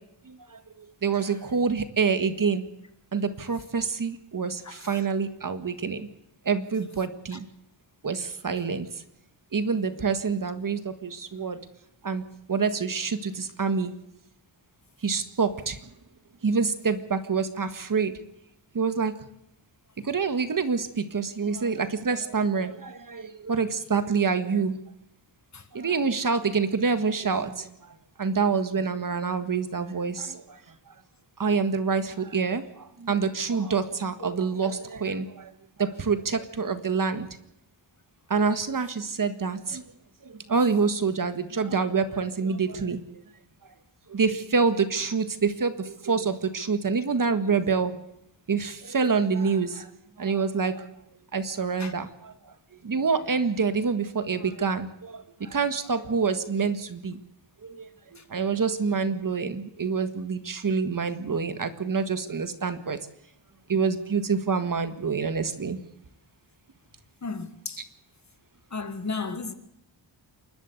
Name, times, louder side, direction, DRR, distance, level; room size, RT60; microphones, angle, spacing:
voice 1, 0.3-0.6 1.0-2.6 3.1-6.1 6.5-7.5 8.0-9.0 9.5-11.6 12.0-12.2 12.5-13.9 15.0-15.8 16.4-18.1 18.7-19.1 20.0-24.8 25.7-27.7 28.2-30.6 31.4-35.5 35.8-37.3 38.3-39.8 40.2-43.2 44.1-48.0 48.5-49.9 50.2-50.9 51.3-52.3 52.8-57.2 57.6-57.9 58.3-63.0 63.7-65.8, right 5 dB, 45° right, 1.7 m, -27 dB
voice 2, 4.6-5.1 7.3-7.4 25.5-25.7 51.8-51.9 58.2-58.3 67.2-67.9 68.7-69.5, left 4 dB, 35° left, 1.7 m, -35 dB
28.0 x 12.5 x 8.1 m
wide cardioid pair, 145°, 46 cm